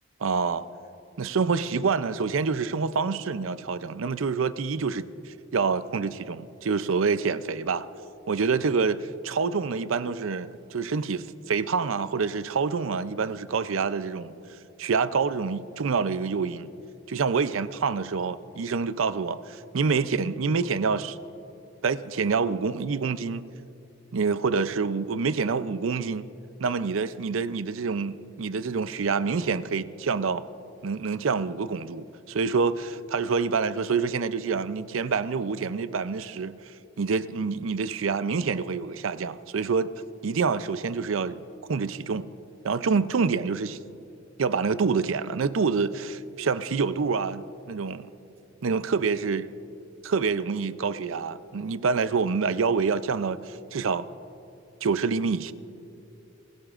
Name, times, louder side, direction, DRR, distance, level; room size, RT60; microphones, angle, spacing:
voice 1, 0.2-0.7 1.2-7.9 8.3-14.3 14.8-16.7 17.1-21.2 21.8-23.4 24.1-26.3 26.6-30.5 30.8-39.9 40.2-41.4 41.7-42.3 42.6-43.8 44.4-48.1 48.6-49.5 50.0-54.1 54.8-55.5, right 5 dB, 85° right, 0.5 m, -27 dB
29.0 x 16.0 x 2.5 m
head